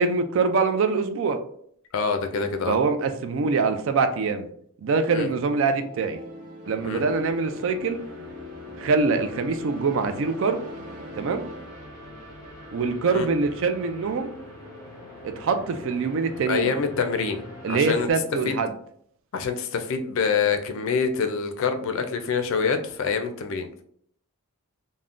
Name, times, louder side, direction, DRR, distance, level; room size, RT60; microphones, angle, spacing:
voice 1, 0.0-1.4 2.7-4.5 4.8-6.2 6.7-8.0 8.8-10.6 11.2-11.4 12.7-14.3 15.2-16.7 17.6-18.7, right 4 dB, 60° right, 8 dB, 0.3 m, -24 dB
voice 2, 1.9-2.8 5.1-5.3 6.8-7.0 13.1-13.3 16.5-18.1 18.5-18.6 19.3-23.8, left 5 dB, 60° left, 7 dB, 0.4 m, -26 dB
sound 1, 5.4-11.7, equal, 40° right, 0.7 m, -43 dB
sound 2, 6.6-18.1, left 2 dB, 15° left, 1.0 m, -43 dB
3.5 x 2.1 x 2.4 m, 0.64 s
head